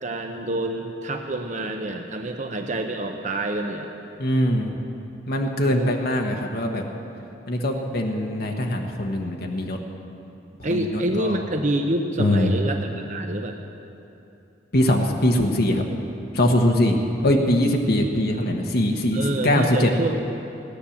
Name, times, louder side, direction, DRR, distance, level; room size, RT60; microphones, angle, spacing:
voice 1, 0.0-3.9 5.7-5.9 10.6-13.6 19.1-20.2, right 1 dB, 40° right, 4 dB, 0.8 m, -27 dB
voice 2, 4.2-4.8 5.3-6.8 7.5-9.8 10.6-11.4 12.2-12.5 14.7-15.8 16.3-19.9, left 1 dB, 55° left, 2 dB, 1.2 m, -22 dB
17.0 x 10.0 x 7.2 m, 2.8 s
head